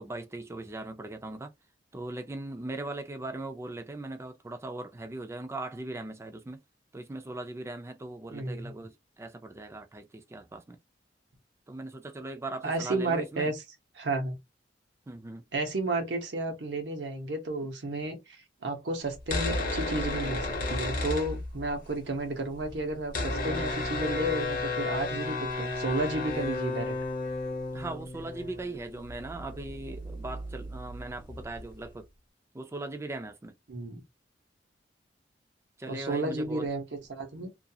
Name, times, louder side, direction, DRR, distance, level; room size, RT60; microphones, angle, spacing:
voice 1, 0.0-1.5 1.9-6.6 6.9-10.8 11.7-13.5 15.1-15.4 27.7-32.1 32.5-33.5 35.8-36.7, right 2 dB, 15° right, 0.4 m, -39 dB
voice 2, 8.3-8.7 12.6-13.6 14.0-14.4 15.5-18.2 18.6-26.9 33.7-34.0 35.9-37.5, right 2 dB, 75° right, 0.8 m, -32 dB
sound 1, 19.2-21.9 22.2-22.3 22.4-31.9, left 2 dB, 50° left, 0.7 m, -33 dB
2.4 x 2.3 x 2.6 m
head